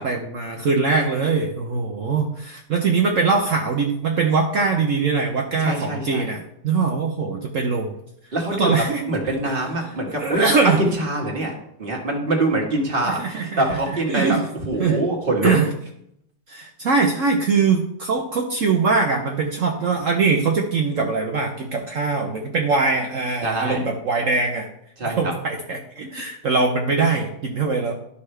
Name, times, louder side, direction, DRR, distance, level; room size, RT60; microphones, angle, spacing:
voice 1, 0.0-7.9 8.5-9.5 10.1-10.8 13.0-13.8 14.1-14.4 14.8-15.0 15.4-15.7 16.5-24.7 25.0-27.9, right 4 dB, 60° right, 3 dB, 0.9 m, -22 dB
voice 2, 5.6-6.3 8.3-10.4 10.8-11.5 11.8-15.6 23.4-23.9 25.0-25.3, right 1 dB, 30° right, 0 dB, 1.6 m, -24 dB
11.5 x 5.6 x 3.3 m, 0.76 s
omnidirectional pair, 1.9 m